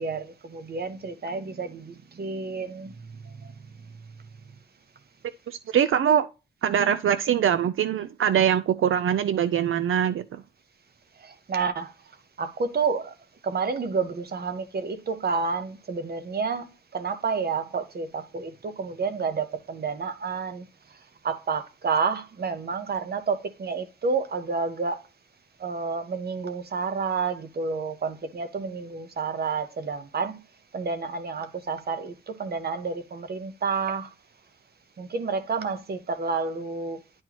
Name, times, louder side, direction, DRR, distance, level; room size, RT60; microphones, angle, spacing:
voice 1, 0.0-3.5 11.2-11.9 12.4-13.1 13.4-20.7 21.2-25.0 25.6-30.4 30.7-34.1 35.0-37.0, right 5 dB, 50° right, 0.9 m, -30 dB
voice 2, 5.5-6.3 6.6-10.4, right 9 dB, 80° right, 0.4 m, -23 dB
10.5 x 4.4 x 2.9 m
wide cardioid pair, 170°, 21 cm